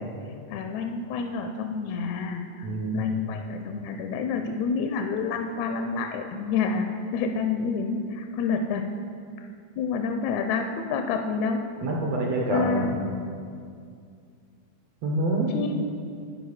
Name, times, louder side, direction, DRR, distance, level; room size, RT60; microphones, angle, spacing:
voice 1, 0.5-2.7 2.9-6.9 7.1-8.8 9.8-11.6 12.5-13.0 15.5-15.9, left 5 dB, 85° left, 5 dB, 1.6 m, -28 dB
voice 2, 2.6-3.1 11.8-12.9 15.0-15.5, right 2 dB, 70° right, -1 dB, 1.7 m, -26 dB
11.5 x 5.0 x 4.9 m, 2.3 s
omnidirectional pair, 3.7 m